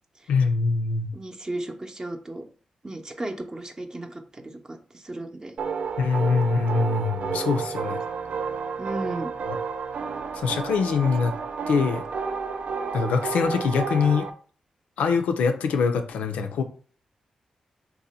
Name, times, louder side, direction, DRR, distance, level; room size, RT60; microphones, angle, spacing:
voice 1, 0.3-1.1 6.0-8.0 10.3-11.3 11.7-12.0 12.9-14.3 15.0-16.6, left 5 dB, 85° left, 0.4 m, -23 dB
voice 2, 1.1-2.4 2.8-5.5 7.3-7.4 8.8-9.3, right 2 dB, 30° right, 0.7 m, -35 dB
sound 1, 5.6-14.3, right 5 dB, 65° right, 0.4 m, -31 dB
2.7 x 2.1 x 4.0 m
supercardioid pair, 45°, 2 cm